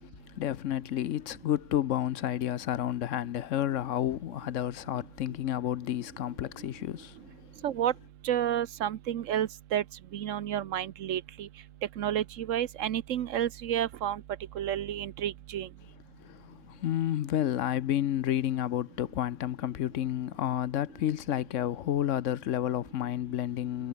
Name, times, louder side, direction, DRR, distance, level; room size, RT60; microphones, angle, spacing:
voice 1, 0.0-7.4 16.2-23.9, left 11 dB, 70° left, 1.0 m, -31 dB
voice 2, 8.2-9.8 10.1-11.5 12.0-14.2 14.6-15.7, right 10 dB, 75° right, 1.1 m, -30 dB
omnidirectional pair, 1.4 m